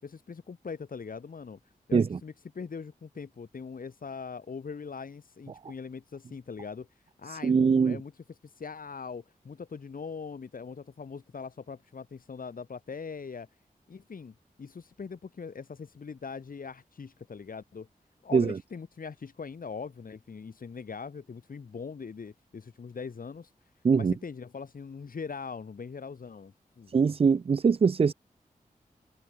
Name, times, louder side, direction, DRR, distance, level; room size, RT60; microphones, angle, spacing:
voice 1, 0.0-1.6 1.9-6.9 7.2-8.1 8.4-13.5 13.9-17.9 18.2-23.5 23.9-26.9, left 5 dB, 75° left, 6.8 m, -41 dB
voice 2, 7.4-8.0 18.3-18.5 23.8-24.1 26.9-28.1, right 5 dB, 40° right, 0.4 m, -22 dB
wide cardioid pair, 80°, 15 cm